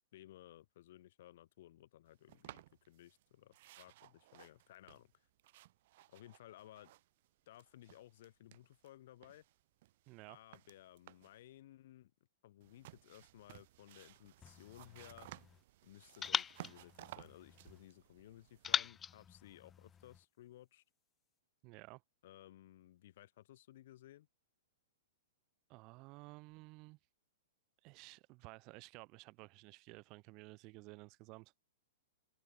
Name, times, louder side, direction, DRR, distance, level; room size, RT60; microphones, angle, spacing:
voice 1, 0.1-5.2 6.1-6.9 7.5-9.4 10.3-12.1 12.4-15.3 15.8-20.8 22.2-24.3, left 14 dB, 60° left, 4.2 m, -58 dB
sound 1, 2.3-3.2 3.5-7.3 7.5-8.9 9.2-11.4 12.6-18.9, right 16 dB, 55° right, 5.6 m, -58 dB
voice 2, 10.1-10.4 21.6-22.0 25.7-27.0 27.8-31.5, right 25 dB, 40° right, 1.5 m, -54 dB
sound 2, 14.4-15.6 16.2-17.8 18.6-20.2, left 7 dB, 20° left, 1.1 m, -41 dB
open air
hypercardioid pair, 130°, 0 cm